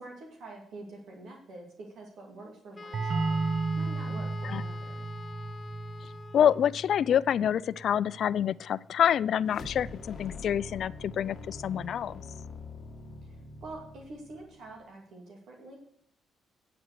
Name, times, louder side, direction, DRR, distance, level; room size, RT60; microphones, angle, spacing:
voice 1, 0.0-5.1 13.2-15.8, right 2 dB, 75° right, 0 dB, 2.6 m, -46 dB
Wind instrument woodwind instrument, 2.8-6.8, left 3 dB, 30° left, 0.8 m, -45 dB
sound 1, 2.9-8.4, right 3 dB, 50° right, 1.2 m, -34 dB
voice 2, 6.3-12.2, left 9 dB, 65° left, 19 dB, 0.4 m, -27 dB
sound 2, 9.4-14.8, left 3 dB, 50° left, 1.7 m, -44 dB
9.3 x 7.8 x 6.6 m, 0.67 s
cardioid pair, 90°, 0 cm